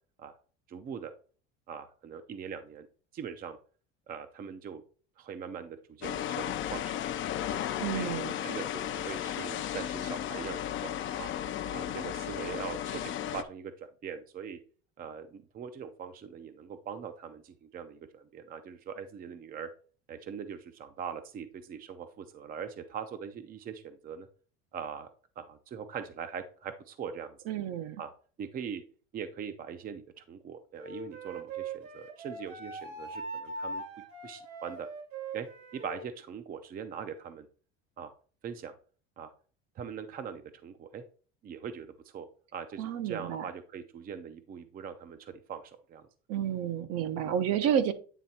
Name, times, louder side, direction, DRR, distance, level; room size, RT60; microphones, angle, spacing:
voice 1, 0.7-1.1 1.7-2.9 3.1-3.6 4.1-4.8 5.2-7.0 7.5-8.2 8.4-11.3 11.7-14.6 15.0-19.7 20.1-24.3 24.7-25.1 25.4-27.4 28.0-28.1 28.4-28.8 29.1-33.8 34.2-34.9 35.3-35.5 35.7-37.5 38.0-38.1 38.4-38.7 39.2-39.3 39.8-41.0 41.4-46.1, right 7 dB, 30° right, 9 dB, 0.6 m, -41 dB
sound 1, 6.0-13.4, left 11 dB, 45° left, 0.6 m, -34 dB
voice 2, 7.8-8.3 27.5-28.0 42.8-43.4 46.3-47.9, right 9 dB, 55° right, 10 dB, 0.8 m, -30 dB
Wind instrument woodwind instrument, 30.8-36.1, right 3 dB, 80° right, 2.4 m, -41 dB
9.2 x 3.4 x 4.2 m, 0.40 s
cardioid pair, 135°, 29 cm